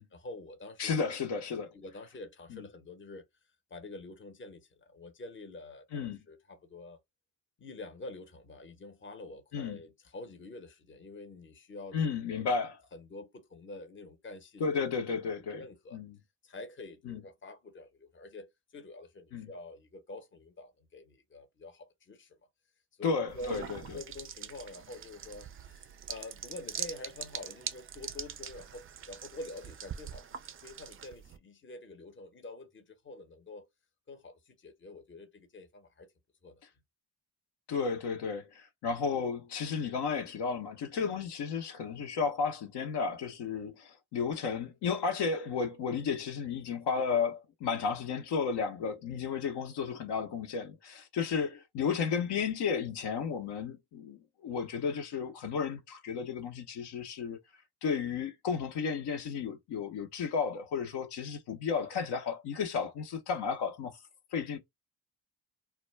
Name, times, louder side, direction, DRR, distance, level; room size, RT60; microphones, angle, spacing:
voice 1, 0.1-1.0 1.7-3.2 3.7-7.0 7.6-12.5 12.9-14.7 15.5-16.0 16.4-22.4 23.0-33.7 34.1-36.1 36.4-36.6, left 2 dB, 25° left, 0.8 m, -47 dB
voice 2, 0.8-1.7 2.5-2.6 5.9-6.2 9.5-9.8 11.9-12.8 14.6-15.6 15.9-16.2 17.0-17.2 19.3-19.5 23.0-24.0 37.7-57.4 57.8-64.0 64.3-64.6, left 5 dB, 55° left, 0.7 m, -33 dB
sound 1, 23.3-31.4, right 8 dB, 30° right, 0.4 m, -43 dB
2.2 x 2.1 x 3.2 m
hypercardioid pair, 50°, 49 cm